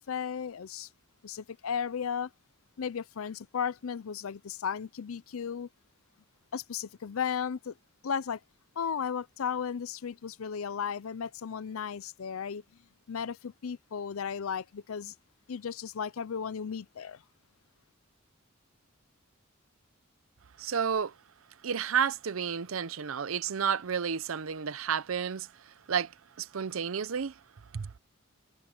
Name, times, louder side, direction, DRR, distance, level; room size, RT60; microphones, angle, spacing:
voice 1, 0.1-0.9 1.2-2.3 2.8-5.7 6.5-7.7 8.0-8.4 8.8-12.6 13.1-15.1 15.5-17.2, left 7 dB, 80° left, 0.5 m, -35 dB
voice 2, 20.6-21.1 21.6-26.1 26.4-27.3 27.7-27.9, right 7 dB, 75° right, 0.6 m, -31 dB
head